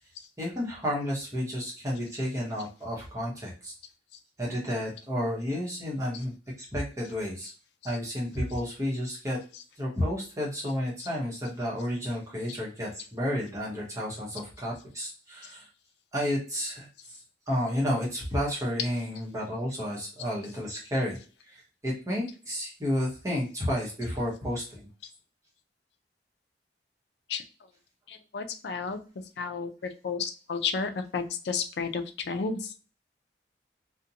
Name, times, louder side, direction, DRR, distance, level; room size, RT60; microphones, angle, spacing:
voice 1, 0.4-3.7 4.4-7.5 7.8-9.4 9.8-15.7 16.1-16.9 17.5-21.2 21.5-24.9, equal, 20° right, -4 dB, 0.9 m, -31 dB
voice 2, 28.1-29.0 29.4-32.7, left 5 dB, 75° left, 7 dB, 0.4 m, -32 dB
2.5 x 2.1 x 2.7 m, 0.35 s
head